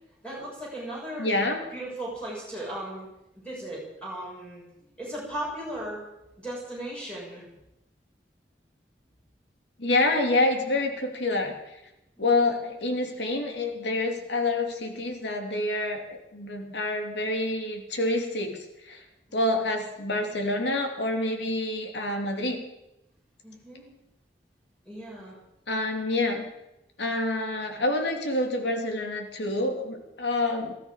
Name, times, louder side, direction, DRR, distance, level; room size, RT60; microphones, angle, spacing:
voice 1, 0.2-1.3 1.7-3.1 3.3-4.6 5.0-6.0 6.4-7.4 12.2-12.3 19.3-19.6 23.4-23.9 24.8-25.4, right 1 dB, 5° left, -5 dB, 6.0 m, -37 dB
voice 2, 1.2-1.6 9.8-11.6 12.2-19.0 19.3-22.6 25.7-26.5 27.0-30.7, left 2 dB, 90° left, 3 dB, 2.8 m, -27 dB
19.5 x 14.0 x 5.1 m, 0.89 s
head